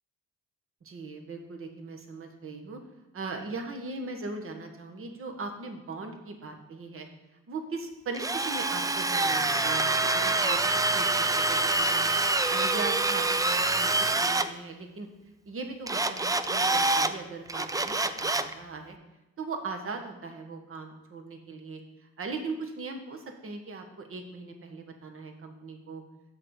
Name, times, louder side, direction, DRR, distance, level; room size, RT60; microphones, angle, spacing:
voice 1, 0.8-2.8 3.1-7.1 7.5-10.6 10.9-12.1 12.5-15.1 15.4-18.9 19.4-26.0, right 3 dB, 45° right, 4 dB, 1.5 m, -39 dB
Drill, 8.1-14.5 15.9-17.1 17.5-18.5, right 2 dB, 10° right, 0.4 m, -26 dB
7.6 x 5.8 x 4.9 m, 1.0 s
cardioid pair, 90°, 30 cm